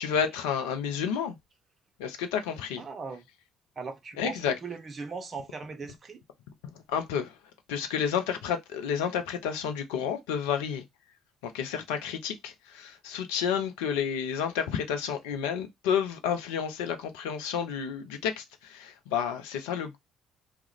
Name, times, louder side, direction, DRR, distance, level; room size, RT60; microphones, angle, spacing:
voice 1, 0.0-1.4 2.0-2.8 4.2-4.5 6.7-7.4 7.7-10.8 11.4-20.0, left 7 dB, 70° left, 0.4 m, -30 dB
voice 2, 2.8-3.2 3.8-6.2, right 4 dB, 40° right, 0.5 m, -39 dB
2.3 x 2.1 x 2.7 m
figure-of-eight pair, 50°, 0 cm